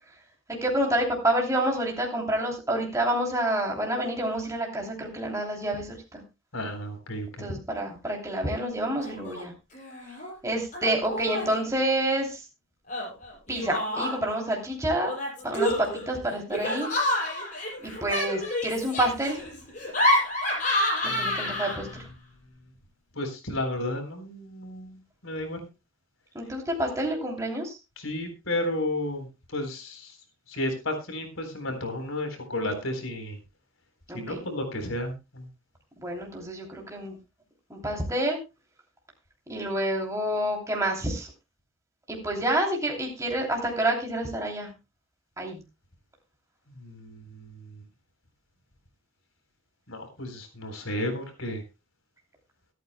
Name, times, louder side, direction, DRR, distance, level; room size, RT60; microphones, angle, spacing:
voice 1, 0.6-6.2 7.4-9.5 10.4-12.4 13.5-15.1 15.4-16.9 17.8-19.4 21.2-21.9 26.3-27.8 34.1-34.4 36.0-37.1 37.7-38.4 39.5-41.3 42.1-44.7 45.4-45.6, right 1 dB, 15° right, -1 dB, 3.0 m, -28 dB
voice 2, 6.5-7.5 21.0-21.6 23.2-25.7 28.0-30.1 30.5-33.4 34.1-35.5 46.7-47.8 49.9-51.6, left 1 dB, 85° left, 5 dB, 3.9 m, -33 dB
Laughter, 9.0-9.4 9.7-10.3 10.7-11.6 12.9-14.4 15.1-22.0, left 1 dB, 40° left, 6.2 m, -29 dB
23.5 x 9.3 x 2.2 m, 0.27 s
head